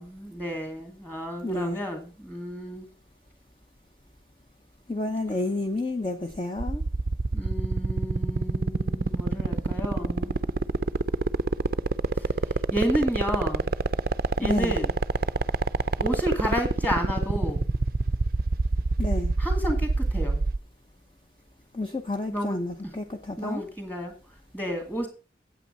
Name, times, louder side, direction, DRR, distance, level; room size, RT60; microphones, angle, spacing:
voice 1, 0.0-2.9 7.3-10.4 12.2-12.3 12.7-13.7 14.4-14.9 16.0-17.7 19.4-20.4 22.3-22.6 23.4-24.1 24.5-25.1, equal, 10° left, 5 dB, 2.4 m, -31 dB
voice 2, 1.4-1.8 4.9-6.8 14.4-14.7 19.0-19.3 21.7-23.6, left 2 dB, 30° left, 5 dB, 0.8 m, -30 dB
sound 1, 6.6-20.6, right 3 dB, 50° right, 0.4 m, -25 dB
9.0 x 8.3 x 5.2 m, 0.36 s
head